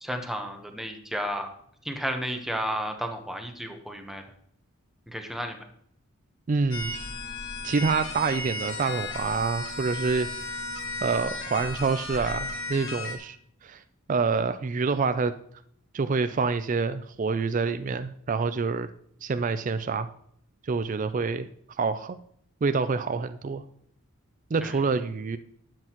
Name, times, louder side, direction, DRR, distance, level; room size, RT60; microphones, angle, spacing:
voice 1, 0.0-1.5 1.8-4.2 5.1-5.6 24.6-24.8, equal, ahead, 4 dB, 1.0 m, -32 dB
voice 2, 6.5-6.9 7.6-10.5 11.0-13.4 13.6-13.8 14.1-15.3 15.9-18.9 19.2-20.1 20.6-21.5 21.8-22.2 22.6-23.6 24.5-25.4, right 4 dB, 35° right, 11 dB, 0.4 m, -27 dB
sound 1, 6.7-13.2, left 2 dB, 60° left, 1.7 m, -35 dB
12.0 x 7.7 x 3.0 m, 0.67 s
head